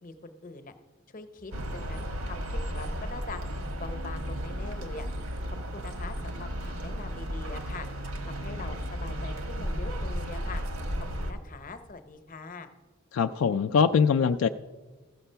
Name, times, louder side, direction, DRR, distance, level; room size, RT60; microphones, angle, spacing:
voice 1, 0.0-0.7 1.1-5.1 5.4-7.9 8.2-10.6 11.2-12.7, left 3 dB, 40° left, 9 dB, 0.7 m, -43 dB
sound 1, 1.5-11.3, equal, 85° right, 1.2 m, -34 dB
voice 2, 13.1-14.5, left 6 dB, 70° left, 9 dB, 0.3 m, -23 dB
14.5 x 6.8 x 5.6 m, 1.3 s
head